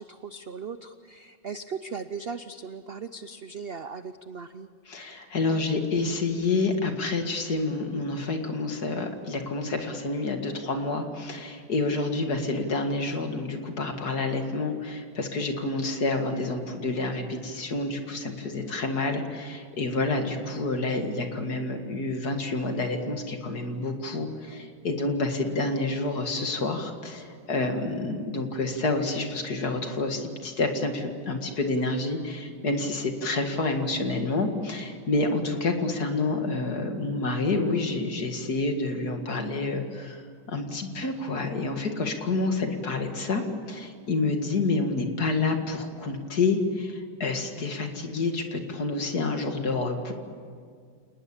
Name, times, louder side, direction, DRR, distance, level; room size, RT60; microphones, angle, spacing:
voice 1, 0.0-4.7, right 5 dB, 75° right, 11 dB, 0.5 m, -38 dB
voice 2, 4.9-40.2 40.5-50.1, left 3 dB, 55° left, 5 dB, 2.6 m, -28 dB
28.5 x 20.0 x 8.7 m, 2.1 s
omnidirectional pair, 2.0 m